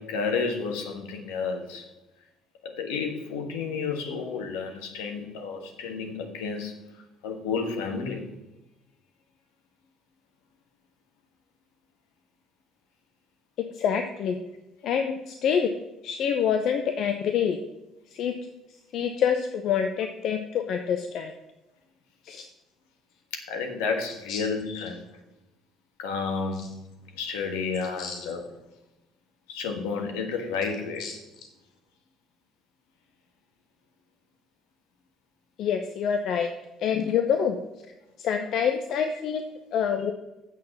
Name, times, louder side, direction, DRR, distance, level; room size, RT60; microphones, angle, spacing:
voice 1, 0.0-1.8 2.6-6.7 7.2-8.2 23.5-25.0 26.0-26.6 27.2-28.4 29.5-31.1, left 5 dB, 75° left, 4 dB, 1.5 m, -31 dB
voice 2, 13.7-14.4 14.8-15.7 16.0-17.6 18.1-18.3 18.9-21.3 22.2-22.4 24.3-24.4 26.5-26.7 28.0-28.3 31.0-31.1 35.6-36.5 36.8-37.6 38.2-40.1, left 7 dB, 60° left, 6 dB, 0.8 m, -26 dB
7.4 x 6.6 x 7.3 m, 0.98 s
hypercardioid pair, 55°, 0 cm